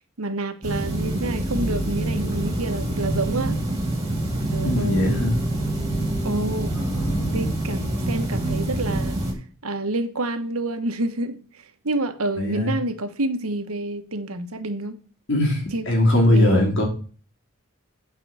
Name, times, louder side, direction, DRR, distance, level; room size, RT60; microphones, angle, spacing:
voice 1, 0.2-3.6 4.5-5.2 6.2-6.7 7.3-9.3 9.6-11.5 11.8-15.0 15.7-15.9 16.1-16.7, right 2 dB, 90° right, 1.3 m, -28 dB
sound 1, 0.6-9.3, right 1 dB, 15° right, 2.5 m, -26 dB
voice 2, 4.6-5.4 6.7-7.5 12.4-12.7 15.3-16.8, left 1 dB, 60° left, 3.5 m, -21 dB
9.0 x 4.8 x 7.0 m
head